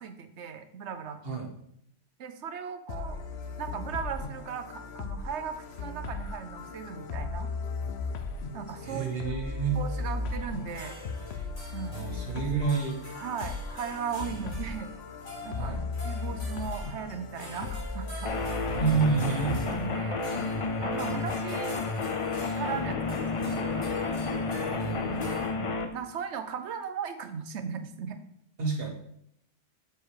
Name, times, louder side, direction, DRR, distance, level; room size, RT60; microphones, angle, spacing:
voice 1, 0.0-1.2 2.2-3.2 3.6-7.5 8.5-9.3 9.7-11.0 11.7-12.1 13.2-14.9 15.4-15.7 16.0-18.6 19.4-20.2 20.8-21.9 22.6-23.9 25.5-28.2, right 7 dB, 75° right, 9 dB, 1.0 m, -37 dB
sound 1, 2.9-19.7, left 3 dB, 65° left, 1.0 m, -37 dB
voice 2, 8.8-9.8 11.9-13.0 15.5-15.8 18.7-19.6 24.6-25.3 28.6-28.9, right 5 dB, 55° right, 0 dB, 1.8 m, -29 dB
sound 2, 10.6-25.5, left 1 dB, 85° left, 3.3 m, -47 dB
sound 3, 18.2-25.9, left 3 dB, 40° left, 0.5 m, -31 dB
7.4 x 4.6 x 4.8 m, 0.70 s
omnidirectional pair, 1.2 m